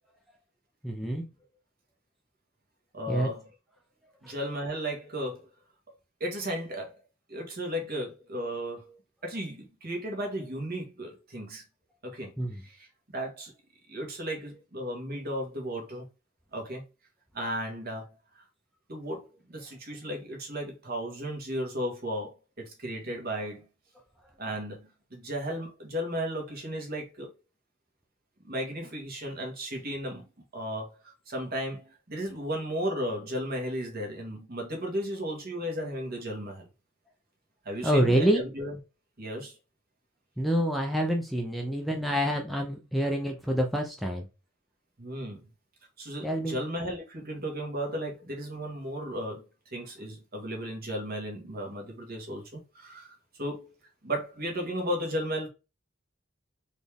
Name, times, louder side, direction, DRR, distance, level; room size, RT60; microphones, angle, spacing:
voice 1, 0.8-1.2 3.1-3.3 4.2-4.3 12.4-12.6 37.8-38.4 40.4-44.3 46.2-46.6, equal, ahead, 0.5 m, -27 dB
voice 2, 2.9-3.5 4.2-5.5 6.2-6.9 7.3-11.6 12.0-12.9 13.1-13.5 13.9-16.1 16.5-16.8 17.3-18.4 18.9-23.6 24.4-27.3 28.4-30.2 30.5-36.7 37.6-38.8 39.2-39.6 45.0-45.5 46.0-53.7 54.0-55.5, equal, 50° right, 1.6 m, -35 dB
4.2 x 3.4 x 3.5 m
head